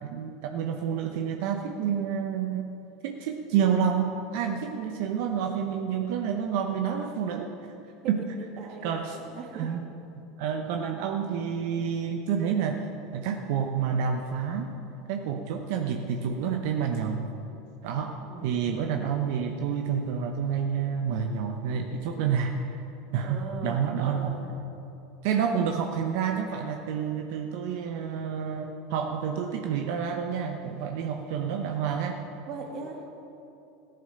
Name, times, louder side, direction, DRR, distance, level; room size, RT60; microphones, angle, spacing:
voice 1, 0.0-2.7 3.0-7.5 8.1-8.2 8.8-9.2 9.5-9.8 10.4-12.8 13.1-14.7 15.1-17.3 17.8-22.8 23.1-24.4 25.2-32.2, right 7 dB, 65° right, 3 dB, 0.9 m, -29 dB
voice 2, 8.0-9.7 18.2-18.5 23.2-24.6 32.5-33.1, right 4 dB, 50° right, 2 dB, 2.4 m, -40 dB
14.0 x 10.5 x 6.8 m, 2.8 s
hypercardioid pair, 95°, 0 cm